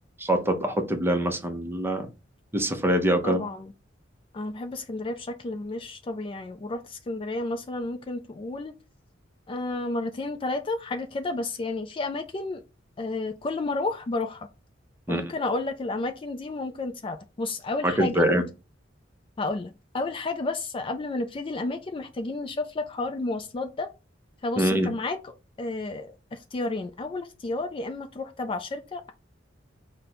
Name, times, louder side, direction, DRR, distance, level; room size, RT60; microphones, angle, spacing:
voice 1, 0.2-2.1 2.5-3.4 15.1-15.3 17.8-18.4 24.6-24.9, right 1 dB, 10° right, 0.6 m, -24 dB
voice 2, 3.2-3.7 4.3-8.7 9.5-12.6 13.0-14.5 15.1-18.3 19.4-23.9 24.4-25.2 25.6-29.1, left 2 dB, 25° left, 0.4 m, -31 dB
5.1 x 2.1 x 4.3 m
head